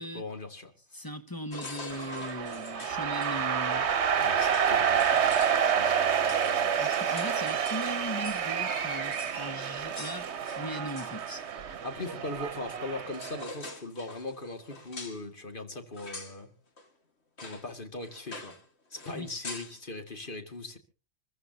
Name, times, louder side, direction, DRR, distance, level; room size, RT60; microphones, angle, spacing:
voice 1, 0.0-0.7 4.2-5.3 5.6-7.2 11.8-16.5 17.4-18.6 18.9-20.8, left 2 dB, 45° left, 2.3 m, -40 dB
voice 2, 0.9-3.9 6.8-11.5 19.1-19.4, equal, 20° left, 1.1 m, -39 dB
sound 1, 1.5-3.3 4.2-4.3 4.5-8.5 8.7-8.8 9.1-9.4 10.0-11.4 12.7-12.8 13.1-15.2 15.9-16.4 16.8-16.9 17.4-17.7 18.0-18.7 18.9-19.8, left 3 dB, 60° left, 2.3 m, -45 dB
sound 2, 1.9-13.4, right 7 dB, 65° right, 1.2 m, -29 dB
27.0 x 14.5 x 2.9 m
omnidirectional pair, 1.3 m